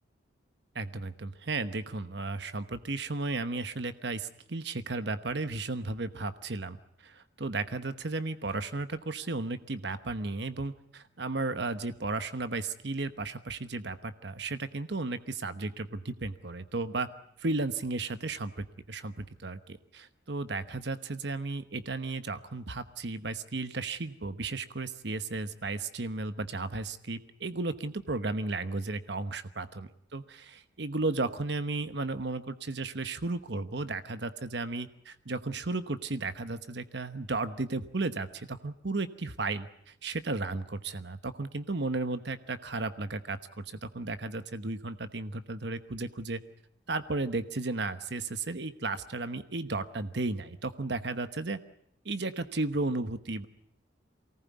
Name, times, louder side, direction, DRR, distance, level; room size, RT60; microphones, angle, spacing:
voice 1, 0.7-6.8 7.0-17.1 17.4-46.4 46.9-51.6 52.0-53.5, right 3 dB, 65° right, 11 dB, 1.1 m, -34 dB
24.0 x 19.0 x 9.4 m, 0.72 s
head